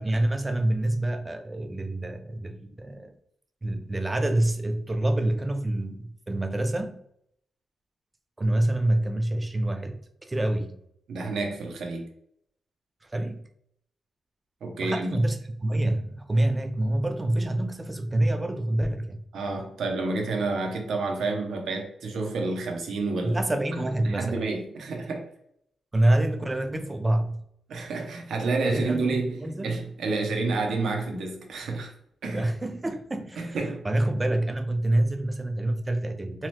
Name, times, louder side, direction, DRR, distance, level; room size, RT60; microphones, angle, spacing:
voice 1, 0.0-3.2 3.6-7.0 8.4-10.8 13.0-13.4 14.8-19.2 23.2-24.4 25.9-27.4 28.6-29.8 32.3-33.6 33.8-36.5, right 1 dB, 25° right, 0.4 m, -27 dB
voice 2, 11.1-12.1 14.6-15.2 19.3-23.4 24.0-25.3 27.7-31.9 32.2-32.5 33.4-33.9, right 3 dB, 80° right, 0.6 m, -29 dB
2.8 x 2.0 x 3.1 m
cardioid pair, 80°, 0 cm